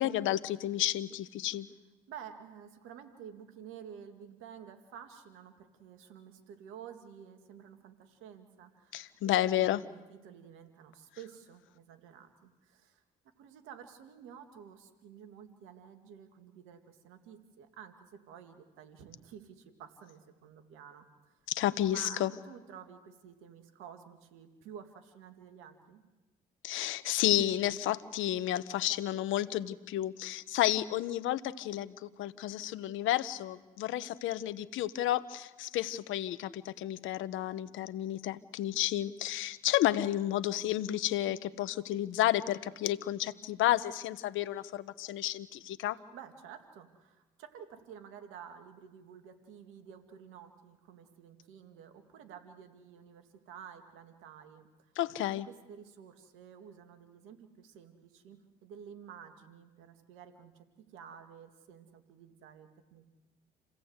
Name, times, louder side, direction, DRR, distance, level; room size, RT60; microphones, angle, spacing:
voice 1, 0.0-1.7 8.9-9.8 21.5-22.3 26.6-46.0 55.0-55.5, left 13 dB, 75° left, 14 dB, 1.0 m, -31 dB
voice 2, 2.1-9.2 9.4-13.0 13.4-21.4 21.9-26.0 46.1-54.9 55.4-63.1, right 8 dB, 85° right, 7 dB, 2.3 m, -51 dB
29.0 x 16.5 x 8.1 m, 1.2 s
hypercardioid pair, 55°, 20 cm